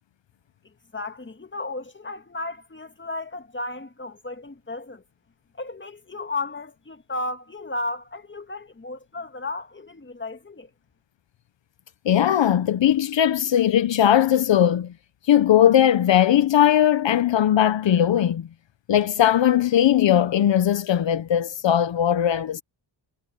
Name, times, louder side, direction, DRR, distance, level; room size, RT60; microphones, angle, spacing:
voice 1, 0.9-5.0 5.6-10.7, left 2 dB, 25° left, 2.0 m, -34 dB
voice 2, 12.0-14.9 15.3-18.5 18.9-22.6, left 10 dB, 70° left, 0.9 m, -19 dB
cardioid pair, 60°, 46 cm